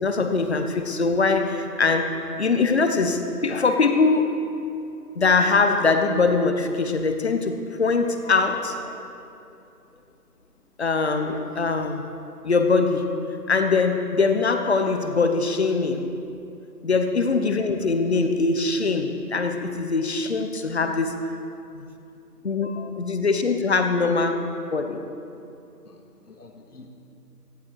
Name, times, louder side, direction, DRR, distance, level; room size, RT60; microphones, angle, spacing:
voice 1, 0.0-4.3 5.1-9.0 10.8-12.0 12.4-13.1 13.5-16.1 16.8-21.1 21.7-21.9 22.4-24.5 24.7-25.0, left 4 dB, 40° left, 7 dB, 1.2 m, -22 dB
voice 2, 25.9-26.9, left 3 dB, 70° left, 3 dB, 2.5 m, -49 dB
18.0 x 15.0 x 4.8 m, 2.7 s
hypercardioid pair, 170°, 48 cm